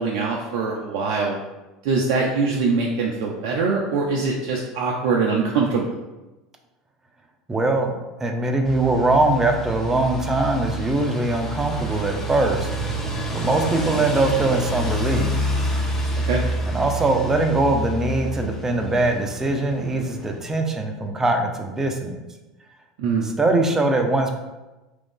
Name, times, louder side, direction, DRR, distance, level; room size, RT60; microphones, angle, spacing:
voice 1, 0.0-1.4 1.8-6.0 16.2-16.4 23.0-23.3, right 4 dB, 65° right, -2 dB, 0.4 m, -23 dB
voice 2, 7.5-7.9 8.2-12.7 13.3-15.3 16.7-22.2 23.2-24.3, right 2 dB, 20° right, 4 dB, 0.6 m, -22 dB
sound 1, 8.6-20.4, right 1 dB, 15° left, 0.8 m, -28 dB
3.0 x 2.5 x 3.6 m, 1.1 s
hypercardioid pair, 80°, 3 cm